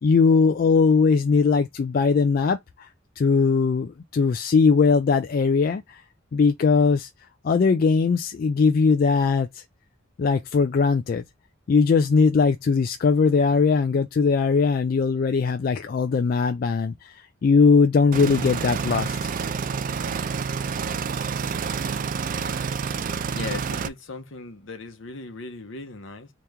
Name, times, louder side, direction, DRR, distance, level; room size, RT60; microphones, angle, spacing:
voice 1, 0.0-2.9 3.2-6.0 6.3-7.1 7.4-9.6 10.2-11.2 11.7-19.3, left 5 dB, 45° left, 0.3 m, -20 dB
sound 1, 18.1-23.9, right 5 dB, 40° right, 0.3 m, -28 dB
voice 2, 23.3-26.3, left 3 dB, 70° left, 0.9 m, -37 dB
3.4 x 2.9 x 3.4 m
head